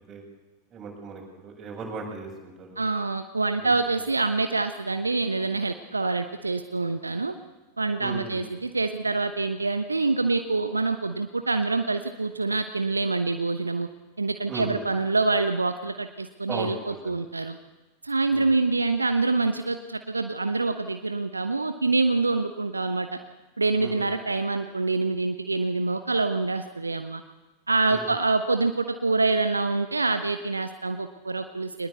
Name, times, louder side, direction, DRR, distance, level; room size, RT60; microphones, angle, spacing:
voice 1, 0.7-2.8 3.6-3.7 8.0-8.4 14.5-14.9 16.5-17.1 18.3-18.5 23.8-24.1 27.9-28.1, right 4 dB, 25° right, 1 dB, 8.0 m, -37 dB
voice 2, 2.8-7.4 7.8-13.9 14.2-17.6 18.0-23.2 23.6-27.2 27.7-31.9, right 3 dB, 80° right, 9 dB, 1.1 m, -26 dB
24.0 x 20.0 x 8.3 m, 1.1 s
figure-of-eight pair, 90°, 0 cm